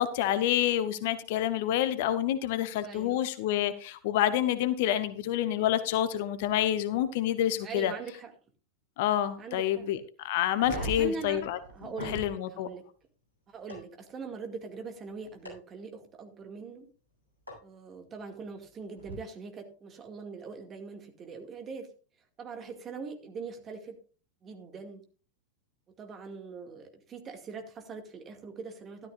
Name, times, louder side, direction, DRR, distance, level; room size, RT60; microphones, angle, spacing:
voice 1, 0.0-7.9 9.0-10.0 10.2-11.6 12.1-12.7, left 11 dB, 50° left, 13 dB, 0.9 m, -28 dB
voice 2, 2.8-3.2 7.6-8.3 9.4-9.9 10.7-12.9 13.5-16.9 17.6-21.9 22.4-24.0 24.4-25.0 26.0-29.1, right 4 dB, 25° right, 5 dB, 2.1 m, -42 dB
sound 1, 10.5-12.3 13.7-13.8 15.4-15.5 17.5-17.6 19.0-19.1, right 1 dB, 90° right, 7.1 m, -39 dB
13.0 x 12.5 x 2.5 m, 0.38 s
figure-of-eight pair, 90°, 0 cm